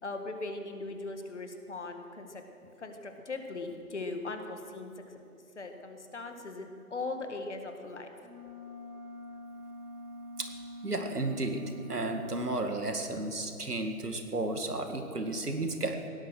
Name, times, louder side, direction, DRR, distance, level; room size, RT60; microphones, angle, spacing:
voice 1, 0.0-2.4 2.8-5.2 5.6-8.1, left 3 dB, 50° left, 5 dB, 1.7 m, -39 dB
sound 1, 8.2-12.7, left 1 dB, 70° right, 2.4 m, -45 dB
voice 2, 10.8-16.0, right 2 dB, 90° right, 5 dB, 2.0 m, -33 dB
17.5 x 11.0 x 6.3 m, 2.6 s
figure-of-eight pair, 165°, 45 cm